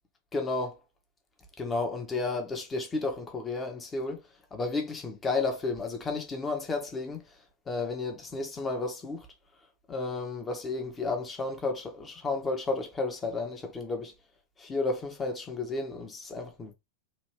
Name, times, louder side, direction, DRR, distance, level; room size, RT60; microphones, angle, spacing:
voice 1, 0.3-0.8 1.6-4.2 4.5-7.2 7.7-9.3 9.9-14.1 14.6-16.7, left 3 dB, 20° left, 1.1 m, -32 dB
4.1 x 2.8 x 3.2 m
figure-of-eight pair, 90°, 0 cm